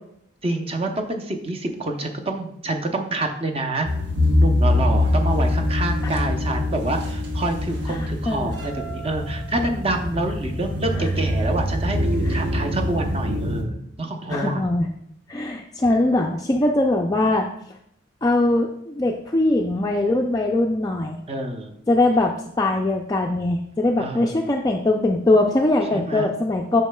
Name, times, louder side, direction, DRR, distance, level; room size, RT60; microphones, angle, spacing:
voice 1, 0.4-3.9 4.3-14.6 21.3-21.7 24.0-24.4 25.9-26.3, right 2 dB, 30° right, 3 dB, 0.6 m, -27 dB
sound 1, 3.9-13.6, left 1 dB, 65° right, 0.9 m, -23 dB
voice 2, 7.9-8.5 11.0-11.1 12.2-12.4 14.3-14.9 15.3-17.5 18.2-21.2 21.9-26.8, left 2 dB, 20° left, 0 dB, 0.3 m, -21 dB
8.2 x 5.5 x 2.2 m, 0.74 s
head